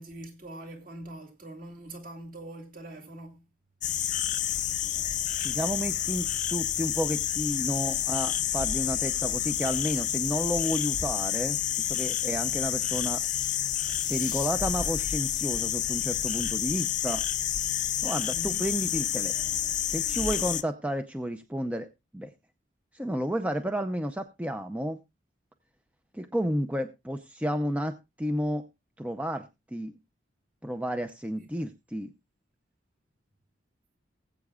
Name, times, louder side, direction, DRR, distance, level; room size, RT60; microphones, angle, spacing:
voice 1, 0.0-3.5 18.3-18.7 31.4-31.5, right 1 dB, 45° right, 2.5 m, -43 dB
sound 1, 3.8-20.6, left 11 dB, 40° left, 0.6 m, -29 dB
voice 2, 5.4-13.2 14.1-17.2 18.0-19.3 19.9-21.9 22.1-22.3 22.9-25.0 26.1-28.6 29.0-29.9 30.6-32.1, equal, 5° right, 0.6 m, -31 dB
20.0 x 8.3 x 2.3 m
head